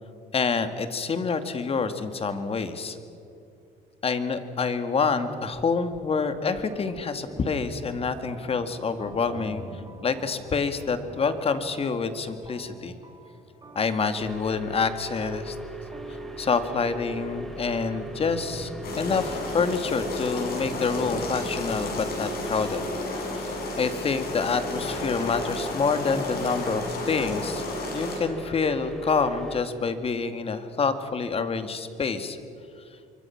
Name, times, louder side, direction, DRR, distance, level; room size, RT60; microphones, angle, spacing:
voice 1, 0.3-3.0 4.0-13.0 13.8-15.6 16.1-22.8 23.2-23.5 23.8-27.6 27.9-32.4, left 5 dB, 35° left, 9 dB, 2.1 m, -27 dB
sound 1, 5.7-6.0 6.7-22.7, right 3 dB, 25° right, 2.8 m, -45 dB
sound 2, 14.2-29.6, equal, 5° left, 3.6 m, -38 dB
sound 3, 18.8-28.2, left 2 dB, 65° left, 7.3 m, -33 dB
27.0 x 24.0 x 5.9 m, 2.6 s
cardioid pair, 110°, 17 cm